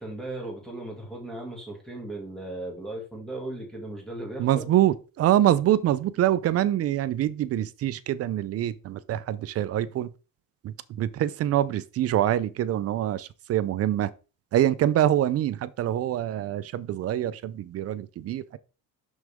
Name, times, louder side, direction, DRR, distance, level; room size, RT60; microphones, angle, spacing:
voice 1, 0.0-4.7, right 2 dB, ahead, 2.2 m, -37 dB
voice 2, 4.4-10.1 10.6-14.1 14.5-18.6, right 12 dB, 45° right, 0.5 m, -25 dB
6.4 x 6.3 x 3.5 m
cardioid pair, 175°, 33 cm